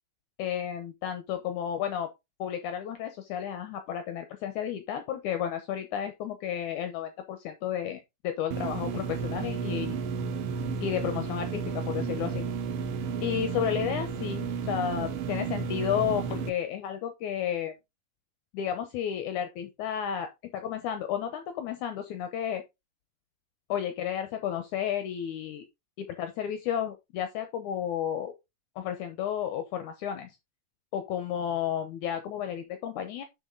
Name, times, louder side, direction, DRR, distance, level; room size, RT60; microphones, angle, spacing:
voice 1, 0.4-2.1 2.4-10.0 10.8-12.5 13.2-17.7 18.5-22.6 23.7-25.7 26.0-28.3 28.8-30.4 30.9-33.2, left 9 dB, 75° left, 2.1 m, -32 dB
sound 1, 8.5-16.5, right 5 dB, 85° right, 1.3 m, -32 dB
7.0 x 6.4 x 3.7 m
omnidirectional pair, 3.9 m